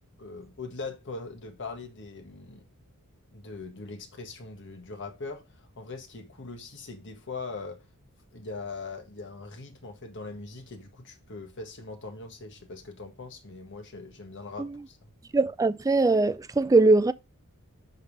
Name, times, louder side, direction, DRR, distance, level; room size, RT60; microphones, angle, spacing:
voice 1, 0.2-2.6 3.3-7.8 8.3-15.1, left 3 dB, 55° left, 1.6 m, -41 dB
voice 2, 15.3-17.1, right 3 dB, 15° right, 0.3 m, -21 dB
5.4 x 5.3 x 5.4 m
head